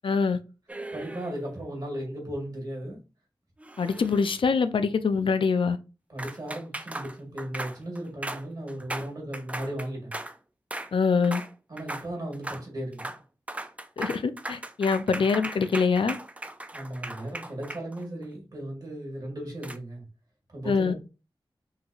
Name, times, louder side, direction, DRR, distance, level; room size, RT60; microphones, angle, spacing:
voice 1, 0.0-0.4 3.8-5.8 10.9-11.4 14.0-16.2 20.7-20.9, left 5 dB, 75° left, 0.4 m, -24 dB
sound 1, 0.7-1.5 3.6-4.5 6.2-10.4 10.7-10.9 11.2-11.5 11.8-12.1 12.3-12.6 12.9-13.2 13.5-18.2 19.6-19.8, right 1 dB, 15° right, 0.3 m, -38 dB
voice 2, 0.9-3.0 6.1-10.1 11.7-13.1 16.7-20.0 20.5-20.9, right 1 dB, 50° right, 1.9 m, -36 dB
3.9 x 2.9 x 2.4 m
wide cardioid pair, 85°, 9 cm